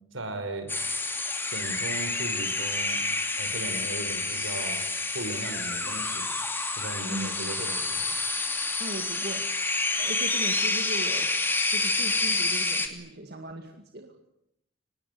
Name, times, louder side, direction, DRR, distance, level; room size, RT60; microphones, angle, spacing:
voice 1, 0.1-0.8 1.5-3.1 3.4-4.9 5.1-6.4 6.8-8.1, right 2 dB, 75° right, 8 dB, 5.3 m, -37 dB
sound 1, 0.7-12.9, left 3 dB, 10° left, 2.8 m, -28 dB
voice 2, 8.8-9.5 9.9-11.4 11.7-14.1, right 1 dB, 55° right, 5 dB, 2.1 m, -38 dB
25.0 x 20.5 x 9.5 m, 0.79 s
head